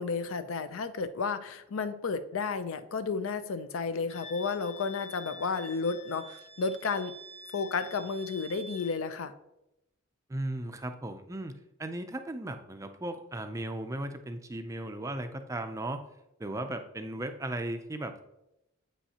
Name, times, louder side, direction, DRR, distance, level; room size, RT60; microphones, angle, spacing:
voice 1, 0.0-7.1 7.5-9.3, left 4 dB, 70° left, 11 dB, 0.5 m, -32 dB
Wind instrument woodwind instrument, 4.1-9.0, left 1 dB, 30° left, 0.6 m, -48 dB
voice 2, 10.3-11.5 11.8-16.0 16.4-18.2, right 1 dB, 15° right, 7 dB, 0.4 m, -36 dB
8.3 x 5.6 x 2.8 m, 0.88 s
head